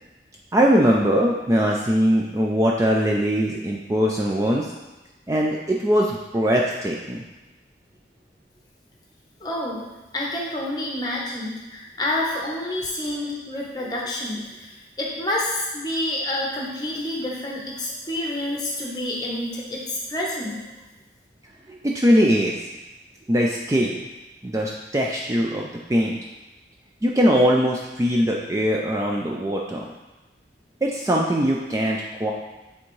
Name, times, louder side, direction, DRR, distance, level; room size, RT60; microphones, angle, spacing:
voice 1, 0.5-4.7 5.3-7.2 21.7-22.6 23.3-23.9 24.4-26.2 27.0-29.9 30.8-32.3, equal, 15° right, -1 dB, 0.3 m, -21 dB
voice 2, 9.4-9.8 10.1-20.6, left 1 dB, 20° left, -3 dB, 1.0 m, -28 dB
8.4 x 3.5 x 3.2 m, 1.1 s
head